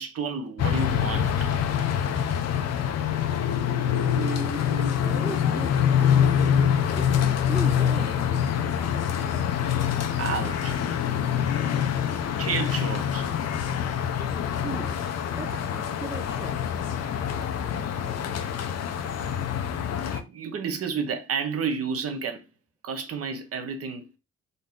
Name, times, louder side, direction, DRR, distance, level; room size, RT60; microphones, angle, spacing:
voice 1, 0.0-1.5 4.7-4.9 10.2-10.8 12.4-13.3 19.5-19.7 20.0-22.5 22.8-24.1, right 5 dB, 50° right, 1.0 m, -31 dB
sound 1, 0.6-20.2, left 8 dB, 55° left, 0.7 m, -25 dB
voice 2, 4.2-4.7 5.0-6.4 6.9-8.2 14.6-15.0 15.3-16.7, right 3 dB, 10° right, 0.5 m, -37 dB
3.9 x 2.7 x 3.7 m
cardioid pair, 90°, 30 cm